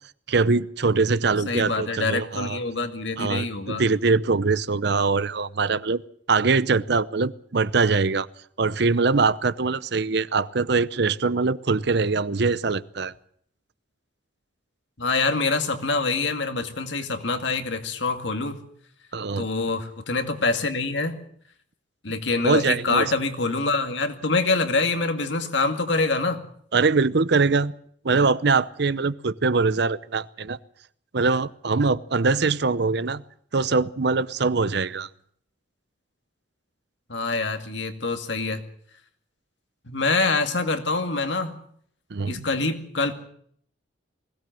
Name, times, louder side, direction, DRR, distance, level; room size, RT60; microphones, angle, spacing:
voice 1, 0.3-2.6 3.2-6.0 6.3-8.3 8.6-13.1 19.1-19.5 22.4-23.1 26.7-27.7 28.0-30.6 31.1-33.2 33.5-35.1 42.1-42.4, right 4 dB, 60° right, 17 dB, 0.7 m, -22 dB
voice 2, 1.5-3.8 15.0-18.6 19.4-21.2 22.0-26.4 37.1-38.6 39.9-41.5 42.3-43.1, left 3 dB, 70° left, 7 dB, 2.2 m, -25 dB
21.0 x 17.0 x 7.6 m, 0.64 s
head